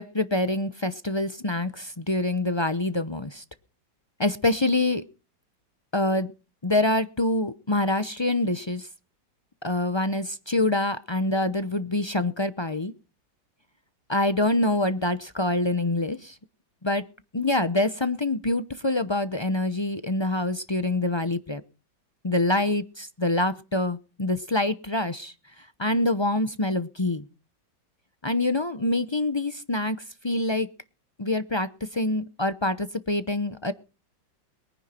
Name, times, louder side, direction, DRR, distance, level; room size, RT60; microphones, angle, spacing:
voice 1, 0.0-3.4 4.2-5.0 5.9-6.3 6.6-8.9 9.6-12.9 14.1-16.4 16.8-17.1 17.3-21.6 22.2-27.3 28.2-30.7 31.2-33.7, left 2 dB, 40° left, 0.3 m, -26 dB
22.5 x 10.5 x 4.4 m
omnidirectional pair, 2.0 m